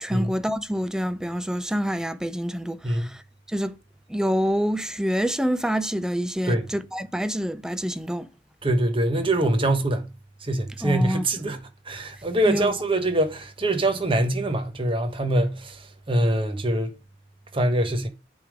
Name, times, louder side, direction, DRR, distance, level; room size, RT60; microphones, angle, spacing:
voice 1, 0.0-3.2 3.5-3.8 4.1-8.3 10.8-11.2 12.5-12.7, equal, 5° right, 0.5 m, -27 dB
voice 2, 8.6-10.1 10.4-11.6 11.9-15.8 16.1-16.9 17.5-18.1, right 1 dB, 30° right, 1.2 m, -24 dB
8.8 x 3.6 x 4.9 m
head